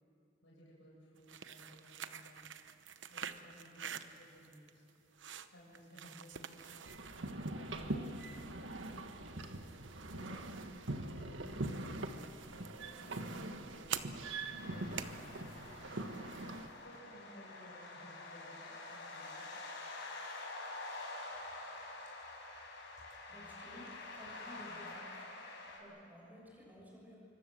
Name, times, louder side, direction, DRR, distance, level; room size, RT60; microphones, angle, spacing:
voice 1, 0.4-2.4 3.1-4.8 5.5-6.9 7.5-9.4 10.1-12.2 12.8-14.1 14.5-16.0 16.7-19.5, equal, 90° left, -5 dB, 7.0 m, -58 dB
sound 1, 1.2-16.8, right 8 dB, 70° right, 0.9 m, -49 dB
sound 2, 6.8-16.7, right 2 dB, 85° right, 1.6 m, -43 dB
sound 3, 14.6-25.8, left 2 dB, 65° left, 5.5 m, -47 dB
voice 2, 23.3-25.2 25.8-27.2, equal, 10° right, -3 dB, 6.7 m, -54 dB
27.0 x 24.5 x 7.8 m, 2.8 s
head